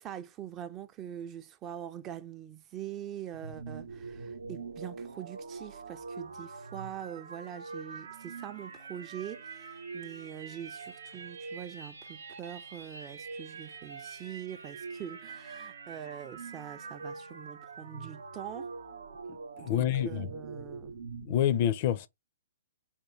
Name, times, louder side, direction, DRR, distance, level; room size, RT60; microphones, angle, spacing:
voice 1, 0.0-18.7 19.6-21.0, right 10 dB, 25° right, 0.4 m, -43 dB
sound 1, 3.3-21.5, right 4 dB, 75° right, 0.8 m, -44 dB
voice 2, 19.6-20.3 21.2-22.1, left 10 dB, 40° left, 0.4 m, -27 dB
3.6 x 2.5 x 3.1 m
hypercardioid pair, 135°, 0 cm